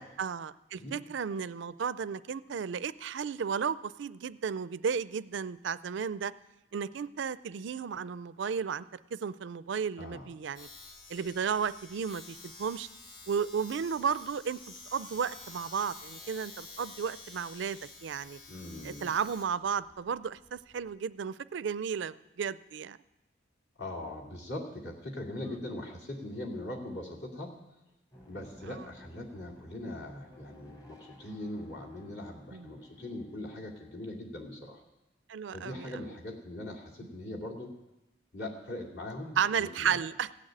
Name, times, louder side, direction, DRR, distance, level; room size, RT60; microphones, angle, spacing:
voice 1, 0.0-6.3 6.7-8.8 9.1-10.7 11.1-12.9 13.3-18.4 18.8-23.0 25.4-25.6 28.7-28.9 32.5-32.8 35.3-35.9 39.4-40.3, right 6 dB, 70° right, 16 dB, 0.4 m, -34 dB
voice 2, 10.0-10.3 18.5-19.1 23.8-27.6 28.3-34.8 35.5-37.7 38.3-40.0, left 1 dB, 60° left, -2 dB, 2.6 m, -41 dB
Domestic sounds home sounds, 10.5-20.9, left 3 dB, 45° left, 2.0 m, -50 dB
sound 1, 28.1-34.2, equal, 20° left, 1.1 m, -56 dB
16.5 x 6.6 x 8.8 m, 0.97 s
head